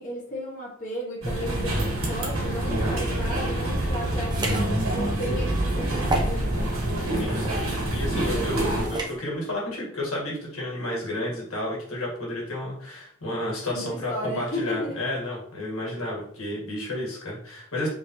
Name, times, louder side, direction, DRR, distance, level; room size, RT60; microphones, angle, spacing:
voice 1, 0.0-6.7 8.2-8.6 13.7-15.0, equal, 40° left, -5 dB, 1.0 m, -34 dB
sound 1, 1.2-8.9, right 1 dB, 75° right, 1.3 m, -26 dB
sound 2, 4.3-4.7 5.2-5.3 5.9-6.4 7.3-7.6 8.8-9.2, right 2 dB, 20° right, 0.6 m, -30 dB
voice 2, 7.1-17.9, left 1 dB, 75° left, -3 dB, 1.5 m, -31 dB
4.0 x 3.4 x 2.6 m, 0.63 s
head